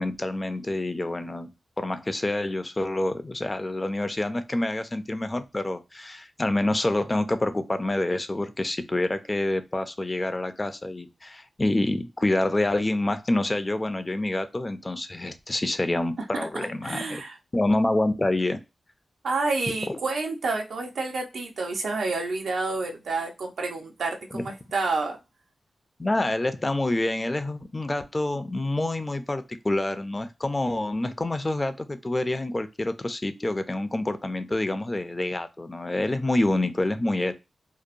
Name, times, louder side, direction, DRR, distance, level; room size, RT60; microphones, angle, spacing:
voice 1, 0.0-1.5 1.8-17.2 17.5-18.6 19.9-20.0 24.3-24.4 26.0-37.3, left 1 dB, 25° left, 0.3 m, -27 dB
voice 2, 16.3-17.4 19.2-25.2, right 3 dB, 85° right, 0.6 m, -29 dB
2.8 x 2.0 x 2.5 m
wide cardioid pair, 85°, 0 cm